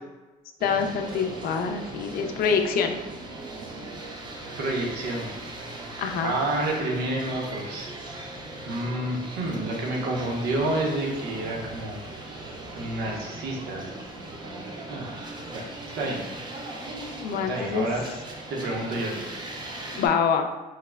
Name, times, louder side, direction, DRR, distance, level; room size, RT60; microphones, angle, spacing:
voice 1, 0.6-3.0 6.0-6.3 17.2-17.9 19.9-20.5, left 6 dB, 60° left, 5 dB, 0.4 m, -25 dB
sound 1, 0.6-20.1, right 2 dB, 25° right, 0.5 m, -39 dB
voice 2, 4.6-5.3 6.2-7.9 8.7-12.0 12.7-13.9 14.4-15.1 15.5-15.6 15.9-16.2 17.5-18.0 18.5-19.3, right 1 dB, 80° right, -1 dB, 0.8 m, -29 dB
4.6 x 2.0 x 2.3 m, 1.2 s
cardioid pair, 110°, 17 cm